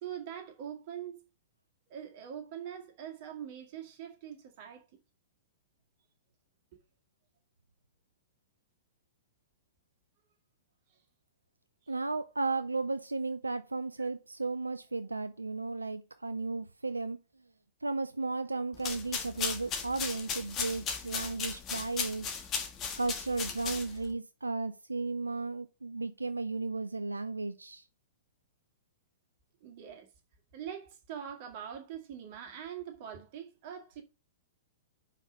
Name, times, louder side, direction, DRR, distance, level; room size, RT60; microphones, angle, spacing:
voice 1, 0.0-1.3 1.9-5.0 10.9-11.0 11.8-11.9 14.0-14.1 29.6-30.1 30.5-34.0, right 9 dB, 45° right, 2.0 m, -43 dB
voice 2, 11.9-17.2 17.8-22.3 23.0-27.8, right 3 dB, 90° right, 0.4 m, -34 dB
sound 1, 18.7-24.1, left 6 dB, 30° left, 1.5 m, -36 dB
5.5 x 4.9 x 6.3 m
figure-of-eight pair, 110°, 0 cm